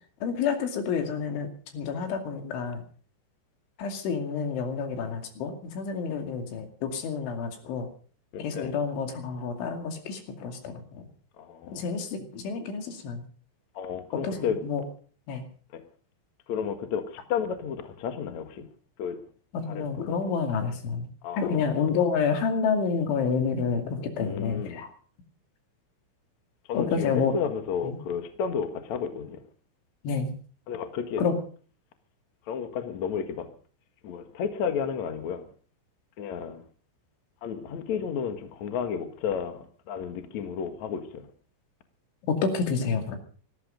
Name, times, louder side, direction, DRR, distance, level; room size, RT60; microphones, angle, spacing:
voice 1, 0.2-1.5 1.7-2.8 3.8-7.9 8.4-11.1 11.7-13.2 14.2-14.8 15.3-15.4 19.5-21.1 21.4-24.9 26.7-27.3 27.8-28.0 30.0-30.3 31.2-31.4 42.2-43.2, left 5 dB, 80° left, 4.8 m, -29 dB
voice 2, 8.3-8.8 11.4-11.8 13.8-14.6 15.7-15.8 16.5-18.7 19.0-19.2 19.7-20.2 21.2-21.7 24.2-24.8 26.7-29.4 30.7-31.2 32.5-33.5 34.0-35.5 36.2-36.6 37.4-39.6 39.9-41.3, left 7 dB, 55° left, 2.1 m, -32 dB
18.5 x 14.0 x 5.1 m
omnidirectional pair, 5.4 m